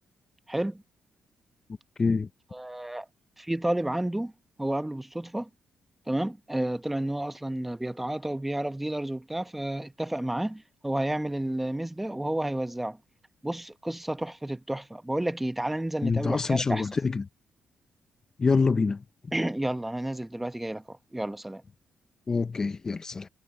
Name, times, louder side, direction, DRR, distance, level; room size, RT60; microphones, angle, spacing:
voice 1, 0.5-0.8 2.5-3.1 3.4-4.3 4.6-5.5 6.1-13.0 13.4-16.9 19.3-21.6, right 1 dB, 5° right, 0.9 m, -31 dB
voice 2, 16.0-17.2 18.4-19.0 22.3-23.3, left 4 dB, 25° left, 0.5 m, -25 dB
cardioid pair, 150°, 2 cm